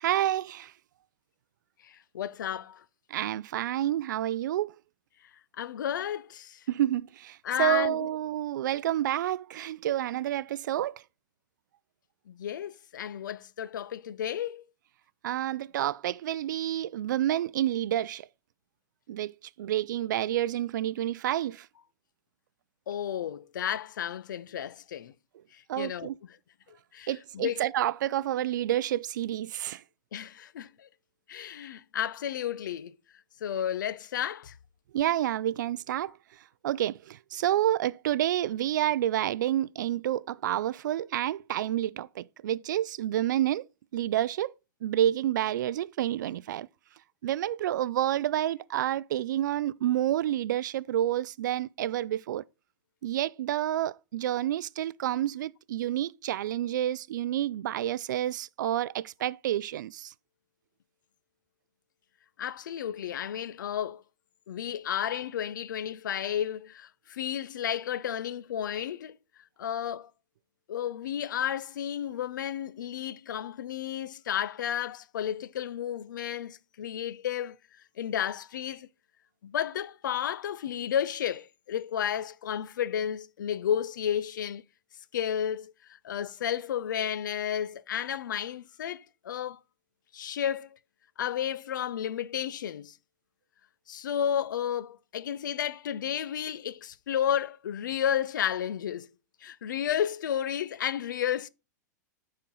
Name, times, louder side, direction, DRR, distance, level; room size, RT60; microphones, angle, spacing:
voice 1, 0.0-0.7 3.1-4.7 6.7-11.0 15.2-18.3 19.1-19.3 19.6-21.7 25.7-26.2 27.1-29.8 34.9-36.1 36.6-43.6 43.9-44.5 44.8-46.7 47.2-52.4 53.0-60.1, right 12 dB, 75° right, 0.4 m, -29 dB
voice 2, 1.8-2.8 5.6-6.6 7.4-8.1 12.3-14.6 22.9-25.1 25.5-26.1 26.9-27.6 30.1-30.9 31.3-32.9 33.4-34.5 62.4-64.0 64.5-69.2 69.6-70.1 70.7-77.6 78.0-78.9 79.4-84.6 85.1-85.7 86.0-89.6 90.1-90.7 91.2-93.0 93.9-99.1 99.4-101.5, left 9 dB, 90° left, 0.5 m, -32 dB
10.0 x 4.4 x 3.7 m
hypercardioid pair, 140°, 10 cm